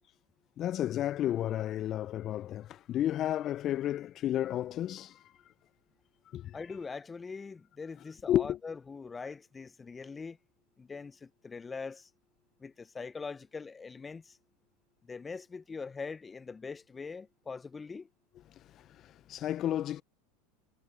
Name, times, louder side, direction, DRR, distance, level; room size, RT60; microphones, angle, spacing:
voice 1, 0.6-5.3 6.3-6.6 8.3-8.6 18.6-20.0, left 12 dB, 40° left, 0.8 m, -32 dB
voice 2, 6.5-10.4 10.8-12.1 12.6-14.4 15.0-18.1, left 4 dB, 20° left, 1.0 m, -42 dB
hypercardioid pair, 85°, 0 cm